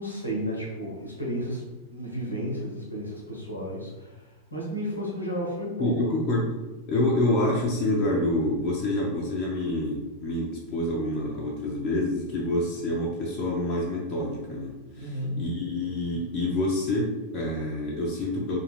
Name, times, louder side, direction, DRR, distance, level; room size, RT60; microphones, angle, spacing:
voice 1, 0.0-6.1 15.0-15.5, equal, 85° left, -3 dB, 0.8 m, -33 dB
voice 2, 5.8-6.5 6.9-18.6, left 1 dB, 35° left, -3 dB, 0.5 m, -27 dB
2.4 x 2.3 x 3.3 m, 1.1 s
figure-of-eight pair, 90°, 0 cm